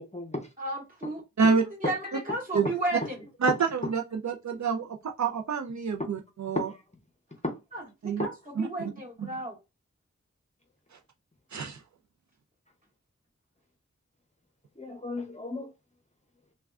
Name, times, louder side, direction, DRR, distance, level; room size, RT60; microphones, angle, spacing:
voice 1, 0.0-0.5 1.0-1.1 1.8-1.9 3.0-3.1 3.5-3.6 3.8-3.9 6.5-6.8 7.4-7.6 14.8-15.7, left 2 dB, 25° left, 0.6 m, -33 dB
voice 2, 0.6-3.2 7.7-8.3 8.6-9.6, right 1 dB, 30° right, 1.7 m, -34 dB
voice 3, 3.4-6.7 8.0-8.3 8.6-8.9 9.2-9.3 11.5-11.8, right 5 dB, 70° right, 0.4 m, -27 dB
3.3 x 2.2 x 2.3 m
wide cardioid pair, 45°, 29 cm